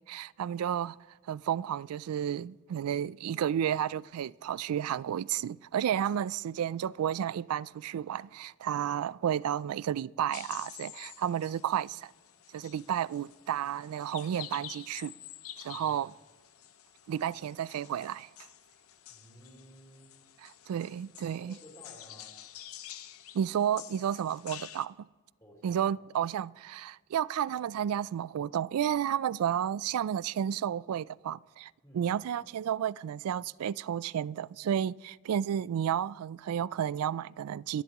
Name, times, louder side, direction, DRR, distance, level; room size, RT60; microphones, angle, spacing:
voice 1, 0.1-1.0 1.3-12.1 12.5-15.1 15.6-16.1 17.1-18.3 20.4-21.5 23.3-24.9 25.6-37.8, right 9 dB, 90° right, 0.3 m, -32 dB
sound 1, 10.3-24.8, left 12 dB, 85° left, 0.8 m, -49 dB
voice 2, 19.1-20.1 21.4-22.4 25.4-26.0 31.8-32.1, equal, 15° left, 4.3 m, -54 dB
25.5 x 11.5 x 3.0 m
head